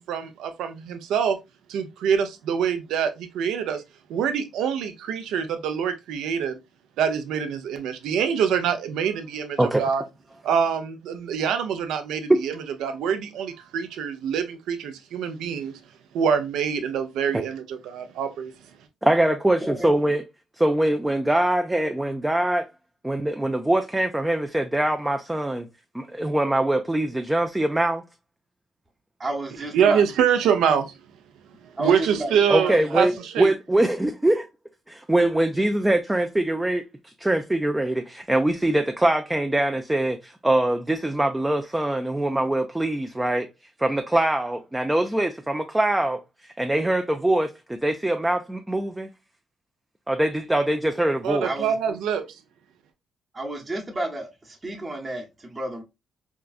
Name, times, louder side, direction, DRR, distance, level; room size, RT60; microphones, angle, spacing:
voice 1, 0.0-1.4 1.7-3.8 4.1-6.6 7.0-10.0 10.4-12.5 12.8-15.7 16.1-18.5 29.7-30.9 31.6-33.5 51.2-52.4, right 7 dB, 85° right, 0.5 m, -25 dB
voice 2, 9.6-9.9 12.3-12.4 19.0-20.2 20.6-22.7 23.0-25.7 25.9-28.0 32.5-34.5 34.9-43.5 43.8-49.1 50.1-51.5, right 1 dB, 10° right, 0.3 m, -23 dB
voice 3, 29.2-30.0 31.8-33.0 51.4-52.0 53.3-55.8, right 1 dB, 25° right, 0.8 m, -32 dB
3.7 x 2.3 x 2.3 m
cardioid pair, 90°, 0 cm